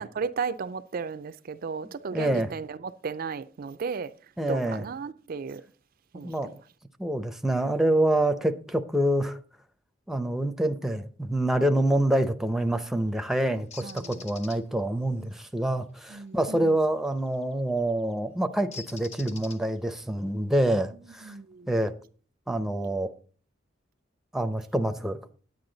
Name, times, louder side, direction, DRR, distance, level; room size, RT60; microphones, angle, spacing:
voice 1, 0.0-4.1 4.5-5.6 6.1-6.5 13.8-14.2 16.1-16.8 21.2-21.7, right 5 dB, 50° right, 0.4 m, -34 dB
voice 2, 2.1-2.5 4.4-4.8 6.1-6.5 7.0-9.4 10.1-21.3 21.7-21.9 22.5-23.1 24.3-25.2, right 1 dB, ahead, 0.6 m, -26 dB
Bird, 13.7-14.6 17.2-17.4 18.7-19.9, left 5 dB, 35° left, 0.9 m, -44 dB
9.6 x 9.4 x 3.9 m
head